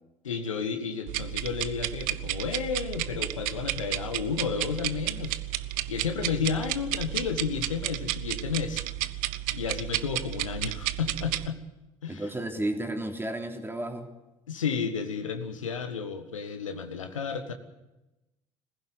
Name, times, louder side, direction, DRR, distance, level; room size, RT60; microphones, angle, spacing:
voice 1, 0.2-5.4 5.9-8.8 9.5-11.6 12.0-12.3 14.5-17.5, left 6 dB, 85° left, 7 dB, 1.5 m, -32 dB
sound 1, 1.1-11.5, right 16 dB, 60° right, 0.8 m, -32 dB
voice 2, 12.1-14.1, right 1 dB, 15° right, 5 dB, 3.2 m, -32 dB
21.5 x 15.5 x 7.9 m, 0.97 s
figure-of-eight pair, 60°, 16 cm